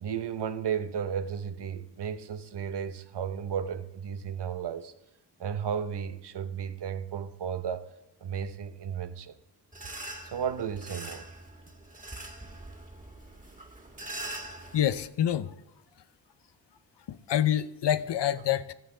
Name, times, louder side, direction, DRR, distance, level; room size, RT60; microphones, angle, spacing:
voice 1, 0.0-4.9 5.4-7.9 8.2-9.4 10.2-11.3, right 7 dB, 80° right, 0.9 m, -34 dB
sound 1, 9.7-15.1, right 2 dB, 20° right, 1.8 m, -43 dB
voice 2, 14.7-15.5 17.1-18.7, left 11 dB, 90° left, 0.7 m, -27 dB
14.5 x 14.0 x 3.8 m
wide cardioid pair, 115°, 41 cm